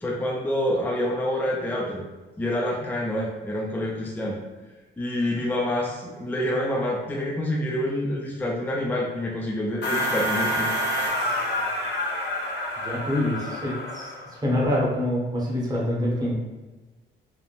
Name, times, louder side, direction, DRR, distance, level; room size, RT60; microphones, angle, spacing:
voice 1, 0.0-2.0 2.4-4.4 5.0-10.7, left 1 dB, 10° left, -2 dB, 0.4 m, -27 dB
sound 1, 9.8-14.3, equal, 60° left, 0.8 m, -28 dB
voice 2, 12.8-16.4, left 1 dB, 20° right, -4 dB, 0.9 m, -26 dB
3.0 x 2.0 x 2.5 m, 1.2 s
cardioid pair, 90°, 20 cm